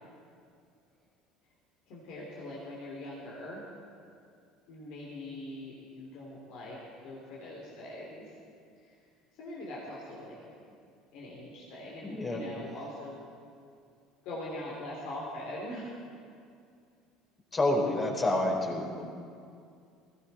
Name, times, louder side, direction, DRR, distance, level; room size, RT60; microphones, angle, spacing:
voice 1, 1.9-3.6 4.7-6.8 7.0-8.3 8.8-9.0 9.3-10.4 11.1-13.2 14.2-15.9, left 1 dB, 65° left, -4 dB, 3.3 m, -42 dB
voice 2, 12.0-12.4 17.5-19.1, left 1 dB, 30° left, 0 dB, 4.2 m, -28 dB
20.5 x 16.0 x 4.3 m, 2.3 s
hypercardioid pair, 75°, 0 cm